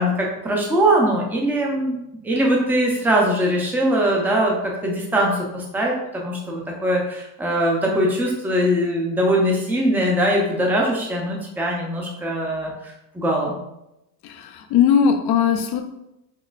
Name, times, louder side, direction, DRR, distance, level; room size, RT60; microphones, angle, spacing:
voice 1, 0.0-2.0 2.2-13.6, right 1 dB, 5° right, -2 dB, 0.6 m, -21 dB
voice 2, 14.2-15.8, left 7 dB, 50° left, 6 dB, 0.7 m, -19 dB
6.2 x 2.1 x 2.5 m, 0.85 s
supercardioid pair, 110°, 48 cm